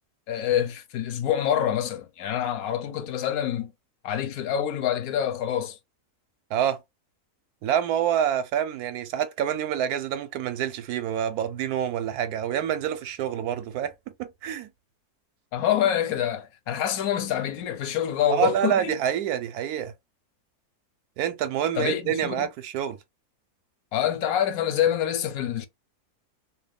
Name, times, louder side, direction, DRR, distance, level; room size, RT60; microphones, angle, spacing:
voice 1, 0.3-3.7 4.0-5.8 15.5-19.0 21.8-22.5 23.9-25.7, left 10 dB, 70° left, 1.0 m, -26 dB
voice 2, 7.6-13.9 14.2-14.7 18.3-19.9 21.2-23.0, right 9 dB, 80° right, 1.1 m, -27 dB
2.7 x 2.2 x 3.3 m
omnidirectional pair, 1.6 m